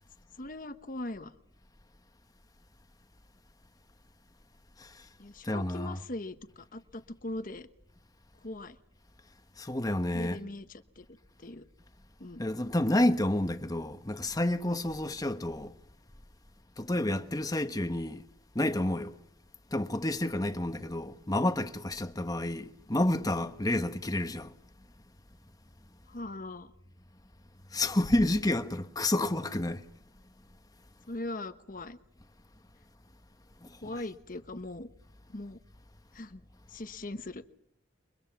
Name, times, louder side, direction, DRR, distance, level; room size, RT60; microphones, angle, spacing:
voice 1, 0.4-1.3 5.2-7.7 8.4-8.8 10.1-11.0 11.4-11.6 12.2-12.4 20.2-20.6 26.1-26.7 31.1-32.0 33.8-34.9 35.3-35.6 36.1-36.4 36.7-37.5, left 2 dB, 45° left, 1.2 m, -40 dB
voice 2, 4.8-5.1 5.4-6.0 9.6-10.4 12.4-15.7 16.8-18.2 18.5-19.1 19.7-24.6 27.7-29.9 33.6-34.0, left 1 dB, 20° left, 1.1 m, -30 dB
29.0 x 24.0 x 6.0 m
head